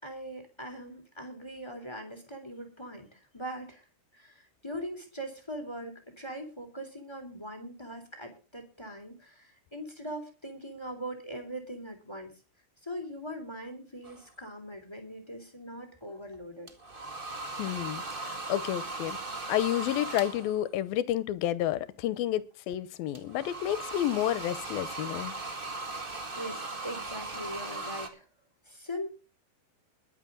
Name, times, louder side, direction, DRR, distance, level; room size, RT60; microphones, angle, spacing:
voice 1, 0.0-3.8 4.1-12.3 12.8-16.7 26.0-28.2 28.6-29.1, equal, 5° left, 2.9 m, -41 dB
sound 1, 14.0-14.3 16.7-20.7 23.1-28.1, right 2 dB, 30° right, 0.9 m, -38 dB
voice 2, 17.6-19.2 19.5-25.3, left 12 dB, 80° left, 2.6 m, -30 dB
22.0 x 8.3 x 3.8 m
omnidirectional pair, 4.3 m